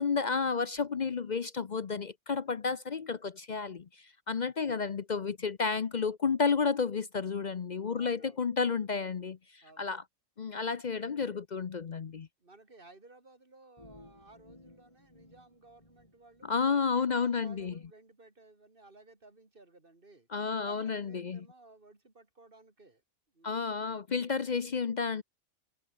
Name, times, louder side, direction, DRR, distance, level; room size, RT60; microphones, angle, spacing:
voice 1, 0.0-10.0 10.4-12.3 16.4-17.7 20.3-21.5 23.4-25.2, left 5 dB, 45° left, 0.6 m, -31 dB
voice 2, 7.9-8.4 9.6-9.9 12.4-16.5 16.9-20.3 20.6-23.0 23.3-23.6, right 2 dB, 40° right, 3.4 m, -57 dB
sound 1, 13.8-16.6, left 1 dB, 25° left, 3.2 m, -57 dB
omnidirectional pair, 1.5 m